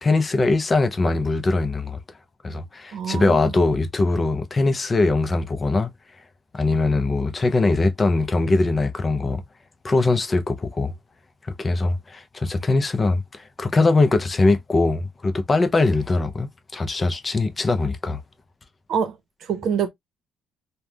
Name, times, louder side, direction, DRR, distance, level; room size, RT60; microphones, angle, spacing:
voice 1, 0.0-2.0 2.4-5.9 6.5-9.4 9.8-10.9 11.6-18.2, left 3 dB, 30° left, 0.5 m, -21 dB
voice 2, 2.9-3.5 18.9-19.1 19.4-19.9, right 7 dB, 70° right, 0.7 m, -25 dB
3.4 x 2.2 x 2.2 m
cardioid pair, 90°, 0 cm